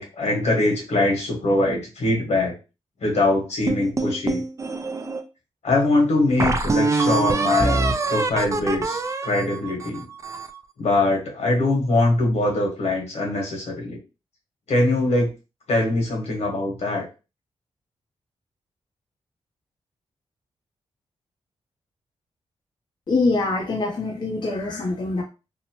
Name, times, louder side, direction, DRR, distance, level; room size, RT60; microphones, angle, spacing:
voice 1, 0.0-2.5 3.0-4.4 5.6-10.0 10.8-14.0 14.7-15.3 15.7-17.0, left 2 dB, 75° left, 0 dB, 1.2 m, -22 dB
sound 1, 3.7-5.2 5.8-5.9 6.4-10.6, right 3 dB, 30° right, 0.4 m, -24 dB
voice 2, 23.1-25.2, left 3 dB, 45° left, 1 dB, 0.5 m, -24 dB
2.7 x 2.0 x 2.9 m, 0.30 s
cardioid pair, 75°, 11 cm